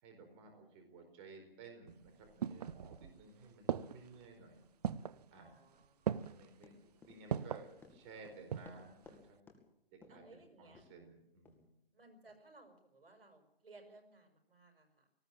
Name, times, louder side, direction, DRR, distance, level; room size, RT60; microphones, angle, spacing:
voice 1, 0.0-4.6 5.3-5.6 6.4-9.4 9.9-11.7, right 3 dB, 25° right, 4 dB, 4.8 m, -56 dB
sound 1, 1.9-3.2 3.7-4.2 4.8-5.2 6.1-6.5 7.3-7.7 8.2-8.9 9.1-9.2, right 9 dB, 45° right, 0.7 m, -38 dB
voice 2, 5.3-6.4 10.1-10.8 11.9-15.0, right 2 dB, 80° right, 6 dB, 6.0 m, -61 dB
Run, 6.2-9.2 9.5-9.6 10.0-10.3 10.7-10.9 11.5-11.6, left 4 dB, 5° left, 2.3 m, -59 dB
19.0 x 16.5 x 8.8 m, 0.78 s
hypercardioid pair, 150°, 29 cm